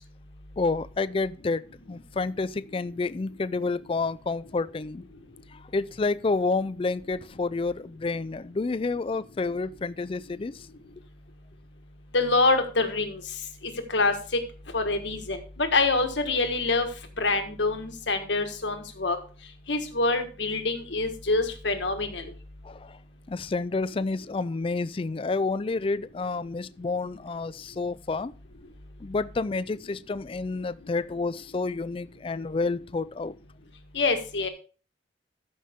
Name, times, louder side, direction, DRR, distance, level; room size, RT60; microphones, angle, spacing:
voice 1, 0.6-1.6 1.9-5.0 5.5-10.7 22.6-23.0 23.3-28.3 29.0-33.4, left 3 dB, 30° left, 0.3 m, -29 dB
voice 2, 12.1-13.2 13.6-14.1 14.7-16.9 17.2-19.2 19.7-22.2 33.9-34.5, left 3 dB, 70° left, 1.5 m, -25 dB
14.0 x 5.5 x 3.6 m
head